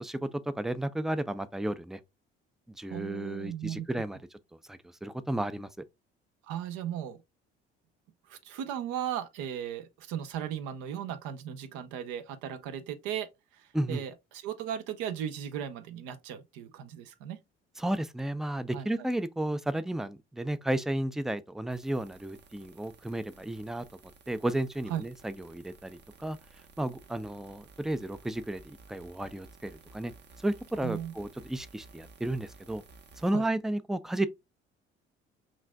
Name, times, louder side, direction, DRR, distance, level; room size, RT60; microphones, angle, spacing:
voice 1, 0.0-2.0 2.7-4.2 4.7-5.8 13.7-14.0 17.8-23.9 24.3-26.4 26.8-30.1 30.4-32.8 33.2-34.3, right 1 dB, ahead, 0.3 m, -33 dB
voice 2, 2.9-4.0 6.5-7.2 8.3-17.4 18.7-18.9 24.9-25.0 30.8-31.1 33.3-33.5, right 10 dB, 70° right, 0.7 m, -37 dB
sound 1, 21.7-33.3, right 4 dB, 35° right, 0.7 m, -55 dB
5.8 x 2.5 x 2.2 m
hypercardioid pair, 55°, 31 cm